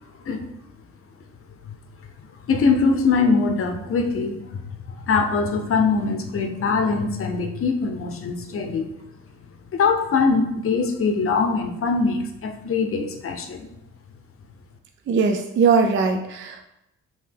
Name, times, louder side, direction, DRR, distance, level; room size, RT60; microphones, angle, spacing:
voice 1, 2.5-4.6 4.9-9.1 9.7-13.7, left 4 dB, 45° left, 4 dB, 0.7 m, -22 dB
voice 2, 15.1-16.6, right 5 dB, 40° right, 4 dB, 0.4 m, -20 dB
5.6 x 2.8 x 3.4 m, 0.87 s
cardioid pair, 90°, 30 cm